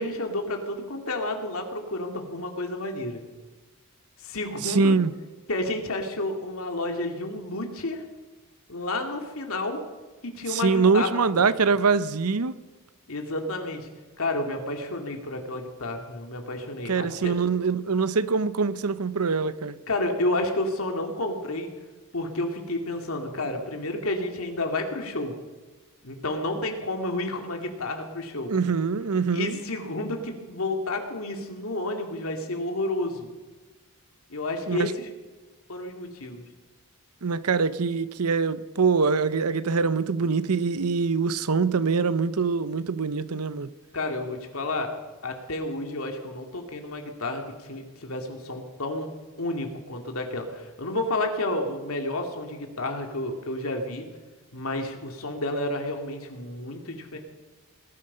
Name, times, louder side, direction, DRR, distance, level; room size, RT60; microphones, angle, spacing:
voice 1, 0.0-3.2 4.2-5.0 5.5-8.0 8.7-9.8 10.2-11.4 13.1-13.9 14.2-17.4 19.9-21.7 22.1-25.3 26.0-28.5 29.3-33.3 34.3-35.1 35.7-36.4 43.9-44.9 45.2-49.1 49.4-54.1 54.5-57.2, left 2 dB, 70° left, 2.6 m, -30 dB
voice 2, 4.6-5.1 10.5-12.5 16.9-19.8 28.5-29.6 34.7-34.9 37.2-43.7, right 5 dB, 85° right, 0.8 m, -24 dB
20.5 x 12.5 x 5.6 m
head